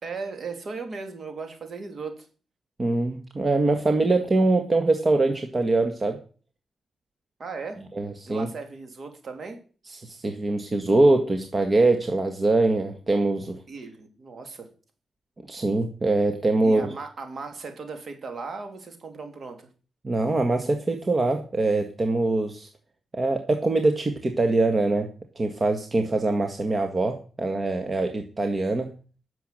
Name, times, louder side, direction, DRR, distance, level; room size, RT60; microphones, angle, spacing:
voice 1, 0.0-2.3 7.4-7.8 8.3-9.6 13.7-14.7 16.6-19.7, right 4 dB, 60° right, 5 dB, 3.2 m, -37 dB
voice 2, 2.8-6.2 8.0-8.5 9.9-13.6 15.5-16.9 20.0-22.7 23.1-25.1 25.4-28.9, right 2 dB, 40° right, 5 dB, 1.7 m, -23 dB
10.5 x 7.1 x 7.7 m, 0.38 s
cardioid pair, 65°, 0 cm